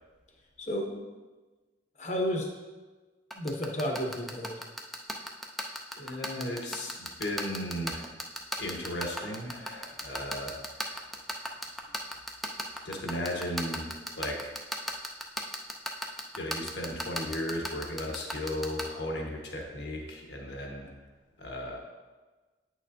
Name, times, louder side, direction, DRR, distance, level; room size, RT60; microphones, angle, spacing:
voice 1, 0.6-1.0 2.0-2.5 3.3-4.7, equal, 40° left, 1 dB, 0.9 m, -32 dB
sound 1, 3.3-18.8, equal, ahead, 0.5 m, -33 dB
voice 2, 6.0-8.1 8.6-11.0 12.8-14.5 16.3-20.9 21.4-21.8, left 1 dB, 70° left, 0 dB, 1.3 m, -36 dB
8.9 x 6.4 x 2.7 m, 1.3 s
head